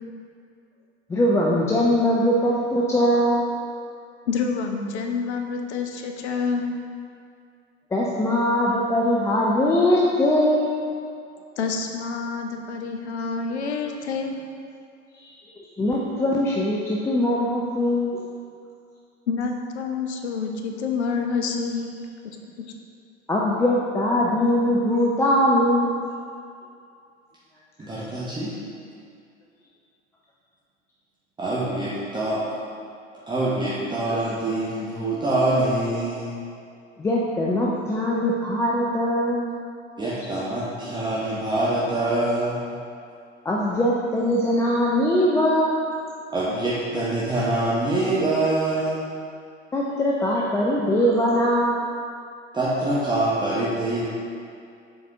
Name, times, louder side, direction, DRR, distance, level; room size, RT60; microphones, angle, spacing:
voice 1, 1.1-3.5 7.9-10.8 15.1-18.2 23.3-26.0 34.0-34.2 37.0-39.4 40.2-40.4 43.4-45.8 49.7-51.9, left 1 dB, 10° left, -4 dB, 0.3 m, -21 dB
voice 2, 4.3-6.7 11.6-14.4 19.3-21.9 22.6-22.7, left 5 dB, 70° left, 3 dB, 0.7 m, -27 dB
voice 3, 27.8-28.5 31.4-32.4 33.3-36.3 40.0-42.6 46.3-49.0 52.5-54.1, right 2 dB, 15° right, -8 dB, 0.9 m, -25 dB
6.9 x 4.1 x 3.5 m, 2.4 s
figure-of-eight pair, 75°, 35 cm